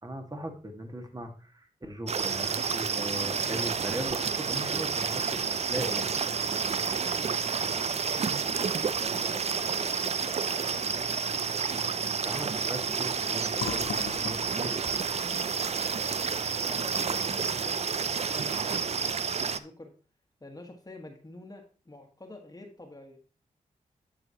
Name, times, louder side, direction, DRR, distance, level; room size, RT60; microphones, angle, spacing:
voice 1, 0.0-6.1 12.2-14.9, right 1 dB, 25° right, 4 dB, 1.7 m, -38 dB
sound 1, 2.1-19.6, right 6 dB, 45° right, 0.5 m, -30 dB
voice 2, 7.7-11.3 16.6-19.9 20.4-23.2, left 2 dB, 25° left, 3 dB, 1.4 m, -48 dB
Fill (with liquid), 13.6-17.2 17.6-17.7 18.0-18.6, left 9 dB, 65° left, 0.4 m, -41 dB
12.0 x 4.9 x 2.9 m, 0.38 s
cardioid pair, 45°, 15 cm